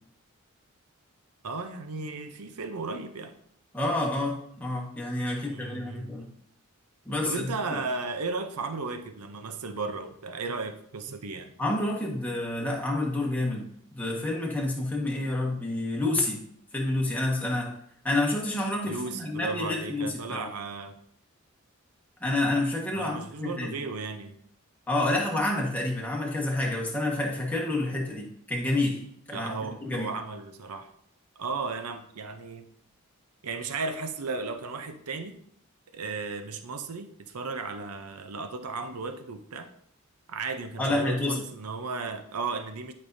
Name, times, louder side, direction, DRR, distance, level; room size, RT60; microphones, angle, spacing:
voice 1, 1.4-3.4 5.3-6.2 7.2-11.5 18.9-21.0 22.9-24.4 29.3-30.9 31.4-32.7 33.4-35.4 35.9-39.7 40.3-42.9, right 4 dB, 90° right, 8 dB, 0.7 m, -35 dB
voice 2, 3.7-6.3 7.0-7.3 7.7-7.8 11.6-16.4 16.7-17.7 18.0-20.5 22.2-23.7 24.9-29.0 29.3-29.5 29.8-30.1 40.8-41.4, left 2 dB, 5° left, -2 dB, 1.4 m, -28 dB
11.5 x 5.3 x 2.7 m, 0.68 s
head